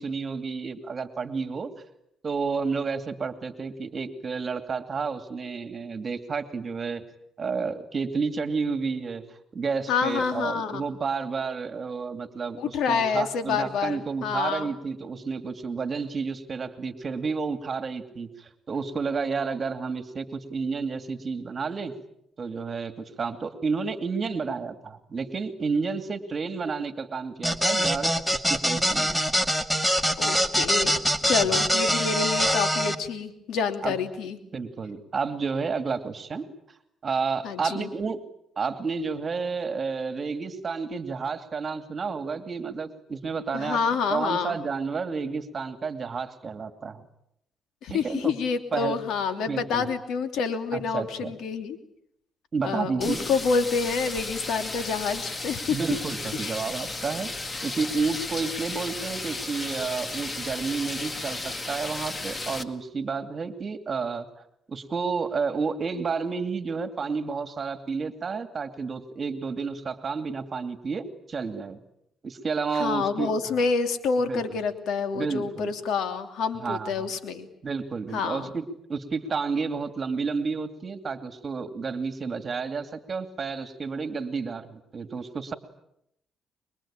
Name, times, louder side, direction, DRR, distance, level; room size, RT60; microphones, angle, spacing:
voice 1, 0.0-1.7 2.2-7.0 7.4-9.2 9.5-21.9 22.4-29.1 31.5-31.7 33.8-34.0 34.5-36.5 37.0-38.2 38.6-43.8 44.1-47.0 47.9-48.3 48.7-49.0 49.5-49.9 50.7-51.3 52.5-53.2 55.7-57.3 57.6-64.3 64.7-71.8 72.2-73.3 74.3-74.6 75.2-75.7 76.5-77.1 77.6-78.6 78.9-85.5, right 5 dB, 40° right, 9 dB, 2.5 m, -31 dB
voice 2, 9.9-10.9 12.6-14.7 30.2-34.4 37.4-37.9 43.5-44.6 47.8-51.8 52.6-55.8 56.4-56.5 72.7-77.5 78.1-78.5, left 5 dB, 80° left, 8 dB, 3.0 m, -28 dB
sound 1, 27.4-32.9, equal, 5° left, 2.1 m, -24 dB
sound 2, 53.0-62.6, left 2 dB, 25° left, 2.1 m, -34 dB
25.5 x 23.5 x 8.9 m, 0.77 s
cardioid pair, 90°, 0 cm